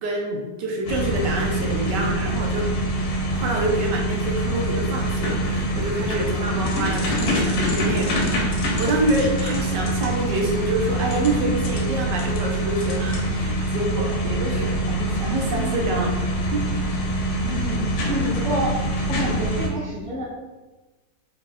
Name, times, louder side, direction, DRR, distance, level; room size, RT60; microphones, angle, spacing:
voice 1, 0.0-2.7 3.3-8.5 8.8-16.1 16.5-16.6 17.4-17.6, right 2 dB, 75° right, 0 dB, 1.2 m, -26 dB
sound 1, 0.9-19.7, right 1 dB, 85° left, 1.4 m, -25 dB
voice 2, 17.5-18.7 19.1-20.2, equal, 5° left, -9 dB, 0.8 m, -28 dB
3.8 x 3.6 x 2.4 m, 1.2 s
omnidirectional pair, 2.0 m